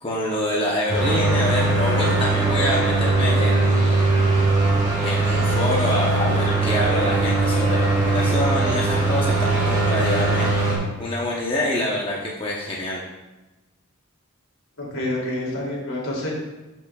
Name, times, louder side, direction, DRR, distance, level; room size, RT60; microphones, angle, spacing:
voice 1, 0.0-4.1 5.0-13.0, left 1 dB, 25° left, -4 dB, 0.8 m, -26 dB
sound 1, 0.9-10.8, right 2 dB, 20° right, 2.3 m, -20 dB
voice 2, 14.8-16.3, left 1 dB, 70° left, -4 dB, 2.7 m, -28 dB
12.0 x 6.1 x 2.3 m, 1.1 s
head